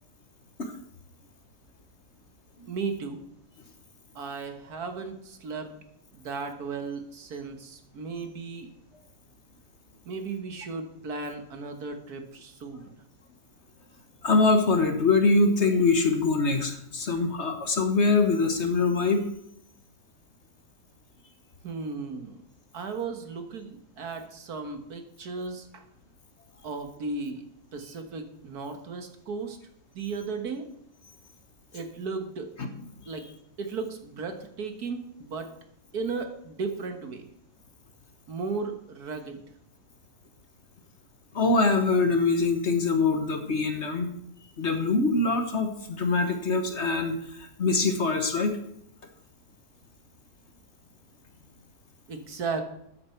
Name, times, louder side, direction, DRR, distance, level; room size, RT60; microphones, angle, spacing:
voice 1, 2.7-3.2 4.2-5.8 6.1-8.7 10.1-12.9 21.6-22.4 22.7-25.8 26.6-27.5 27.7-29.6 29.9-30.7 31.7-32.5 33.1-33.3 33.6-35.5 35.9-37.3 38.3-39.4 52.1-52.6, right 4 dB, 70° right, 6 dB, 1.9 m, -35 dB
voice 2, 14.2-19.2 32.6-32.7 41.3-44.1 44.6-47.2 47.6-48.6, left 3 dB, 45° left, 6 dB, 1.4 m, -23 dB
13.5 x 9.5 x 4.5 m, 0.74 s
omnidirectional pair, 1.7 m